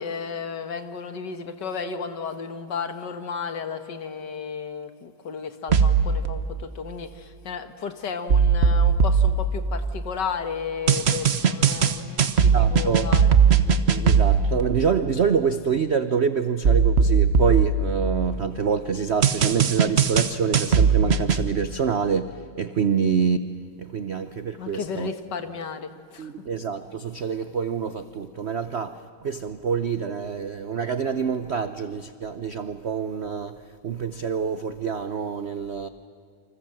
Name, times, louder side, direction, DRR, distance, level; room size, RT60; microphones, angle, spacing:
voice 1, 0.0-13.3 24.6-26.3, left 6 dB, 60° left, 9 dB, 2.0 m, -33 dB
sound 1, 5.7-6.3 8.3-10.2 10.9-14.6 16.6-18.5 19.2-21.5, right 6 dB, 45° right, 0.9 m, -19 dB
voice 2, 12.5-13.2 13.6-23.4 23.8-25.1 26.2-35.9, right 6 dB, 65° right, 11 dB, 0.6 m, -26 dB
29.0 x 25.5 x 7.6 m, 2.2 s
omnidirectional pair, 2.3 m